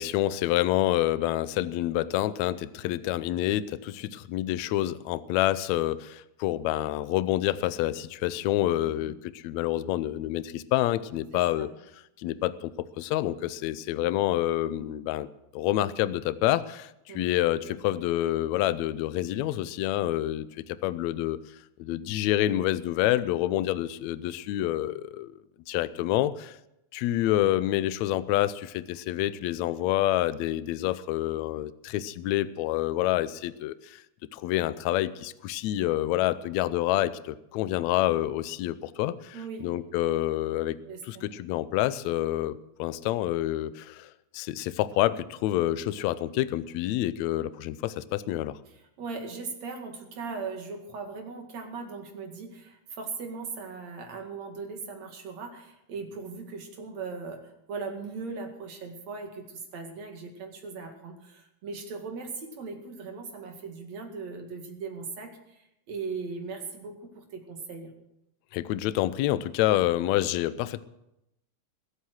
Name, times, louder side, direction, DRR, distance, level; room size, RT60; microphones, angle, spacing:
voice 1, 0.0-11.7 12.2-15.3 15.5-21.4 21.8-25.4 25.7-26.6 26.9-34.0 34.3-40.8 41.1-48.6 68.5-70.8, left 14 dB, 80° left, 15 dB, 1.9 m, -28 dB
voice 2, 8.8-9.1 11.3-11.7 17.1-17.3 17.7-17.8 39.3-39.7 40.9-41.2 48.7-67.9, right 4 dB, 65° right, 3 dB, 3.4 m, -39 dB
20.5 x 8.4 x 6.4 m, 0.84 s
omnidirectional pair, 3.3 m